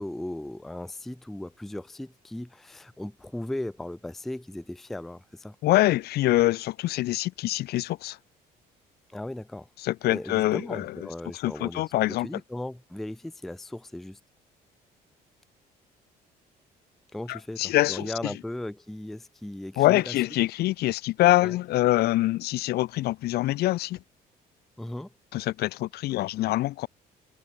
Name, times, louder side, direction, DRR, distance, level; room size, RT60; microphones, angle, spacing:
voice 1, 0.0-5.6 9.1-9.7 10.1-11.8 12.2-14.2 17.1-20.1 21.4-21.6 24.8-25.1, left 1 dB, ahead, 0.3 m, -37 dB
voice 2, 5.6-8.2 9.8-11.0 11.3-12.3 17.3-18.3 19.8-24.0 25.3-26.9, left 16 dB, 70° left, 0.7 m, -25 dB
cardioid pair, 110°, 17 cm